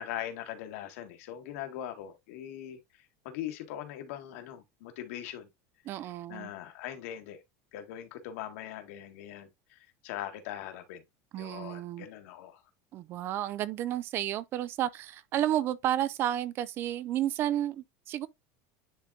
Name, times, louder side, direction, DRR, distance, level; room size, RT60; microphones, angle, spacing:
voice 1, 0.0-5.5 6.3-7.4 7.7-11.0 11.3-12.6, left 11 dB, 70° left, 1.8 m, -41 dB
voice 2, 5.9-6.5 11.3-12.1 12.9-18.3, right 12 dB, 30° right, 0.3 m, -31 dB
10.0 x 3.7 x 2.7 m
cardioid pair, 175°, 8 cm